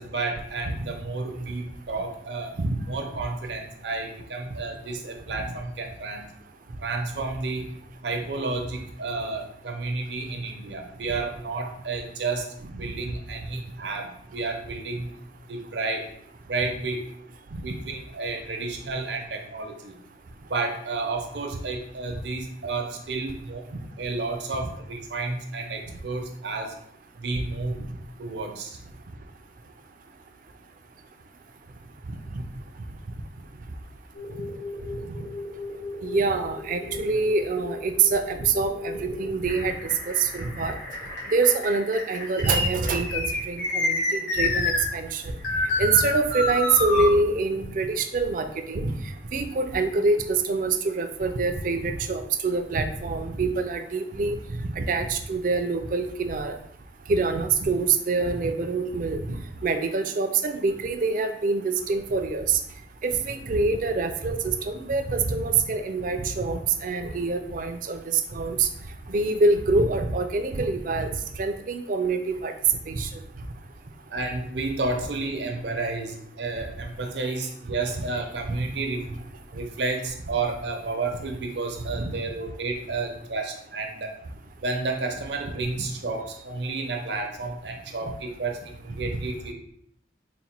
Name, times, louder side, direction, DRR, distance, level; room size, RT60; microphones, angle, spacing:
voice 1, 0.0-2.5 2.9-6.3 6.8-7.7 8.0-15.1 15.5-16.1 16.4-17.1 17.6-20.0 20.5-23.7 24.0-26.8 27.2-27.8 28.2-28.8 58.2-58.4 74.1-79.0 79.5-84.1 84.6-89.5, right 3 dB, 80° right, 3 dB, 0.7 m, -31 dB
sound 1, 34.1-44.8 45.4-47.1, left 2 dB, 85° left, 1.5 m, -29 dB
voice 2, 36.0-39.8 40.1-40.7 41.3-44.0 44.3-45.2 45.8-48.9 49.3-54.4 54.6-56.5 57.1-59.4 59.6-62.6 63.0-68.7 69.1-71.1 71.4-72.5 72.9-73.1 82.0-82.1 89.1-89.2, right 3 dB, 50° right, 7 dB, 0.4 m, -25 dB
4.0 x 2.1 x 4.3 m, 0.67 s
head